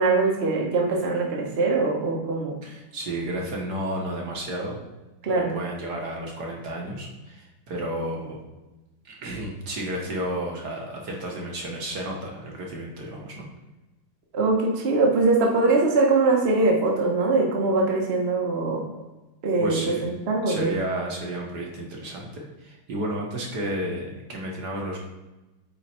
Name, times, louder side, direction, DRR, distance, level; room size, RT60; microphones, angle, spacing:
voice 1, 0.0-2.6 5.2-5.5 14.3-18.8 19.4-20.7, right 3 dB, 35° right, -1 dB, 1.2 m, -22 dB
voice 2, 2.6-4.8 5.3-8.4 9.1-13.5 19.6-20.0 20.5-25.0, right 1 dB, 55° right, -1 dB, 1.7 m, -32 dB
8.6 x 4.0 x 4.3 m, 1.1 s
omnidirectional pair, 2.3 m